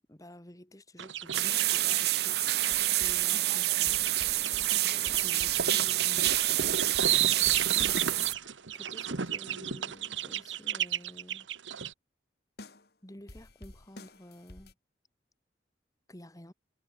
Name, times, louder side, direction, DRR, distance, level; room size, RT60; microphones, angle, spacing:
voice 1, 0.1-4.1 4.9-11.5 13.0-14.7 16.1-16.5, left 1 dB, 20° left, 1.8 m, -51 dB
sound 1, 1.0-2.9 3.5-11.9, right 9 dB, 85° right, 1.3 m, -33 dB
sound 2, 1.3-8.3, right 15 dB, 55° right, 0.8 m, -28 dB
sound 3, 2.7-8.3 12.6-12.9 13.3-14.7, left 1 dB, 55° left, 2.6 m, -49 dB
head